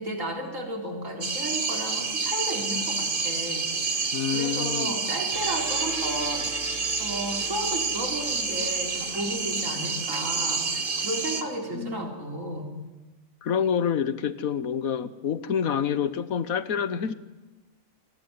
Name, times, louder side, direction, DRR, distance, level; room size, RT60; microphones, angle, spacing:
voice 1, 0.0-12.7, right 1 dB, 65° right, 4.3 m, -34 dB
sound 1, 1.2-11.4, right 4 dB, 40° right, 1.8 m, -29 dB
voice 2, 4.1-5.0 11.7-12.1 13.4-17.1, left 7 dB, 80° left, 1.5 m, -27 dB
sound 2, 5.3-10.4, right 3 dB, 90° right, 2.6 m, -42 dB
28.0 x 19.5 x 9.6 m
omnidirectional pair, 1.5 m